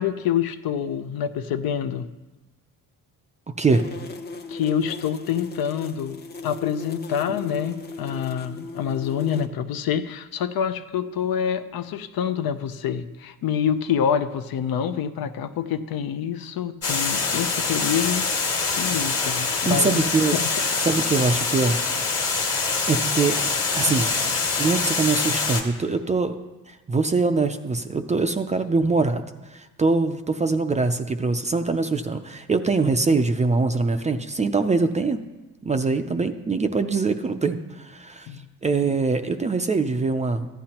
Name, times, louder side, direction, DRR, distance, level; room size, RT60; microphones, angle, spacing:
voice 1, 0.0-2.1 4.5-20.6 38.3-38.5, left 8 dB, 75° left, 10 dB, 0.6 m, -27 dB
sound 1, 3.7-9.5, left 3 dB, 30° left, 0.6 m, -37 dB
Water, 16.8-25.6, left 4 dB, 45° left, 1.4 m, -24 dB
voice 2, 19.7-20.4 20.9-21.8 22.9-23.4 23.7-24.1 24.6-26.4 26.7-29.2 29.5-35.2 35.6-38.3 38.6-40.5, right 3 dB, 20° right, 8 dB, 0.3 m, -23 dB
14.5 x 10.0 x 2.9 m, 1.1 s
cardioid pair, 145°, 36 cm